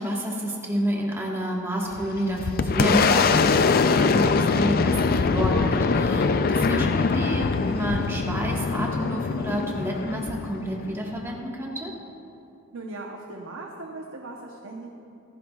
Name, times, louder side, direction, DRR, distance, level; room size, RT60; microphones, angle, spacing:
voice 1, 0.0-3.6 3.9-11.9, equal, 10° right, -2 dB, 1.4 m, -29 dB
Boom, 1.9-11.3, left 4 dB, 40° left, 0.4 m, -23 dB
voice 2, 12.7-14.9, right 2 dB, 60° right, 0 dB, 0.9 m, -38 dB
26.5 x 10.5 x 2.4 m, 2.8 s
head